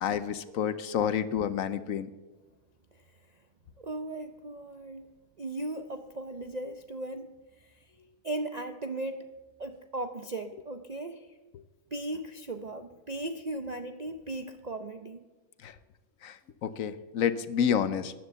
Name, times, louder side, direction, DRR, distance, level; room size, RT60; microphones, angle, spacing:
voice 1, 0.0-2.1 15.6-15.7 16.2-18.1, left 8 dB, 70° left, 13 dB, 1.1 m, -29 dB
voice 2, 3.8-5.1 5.4-7.9 8.2-11.4 11.9-15.2, right 2 dB, 50° right, 7 dB, 0.5 m, -37 dB
14.5 x 10.0 x 6.9 m, 1.2 s
omnidirectional pair, 1.6 m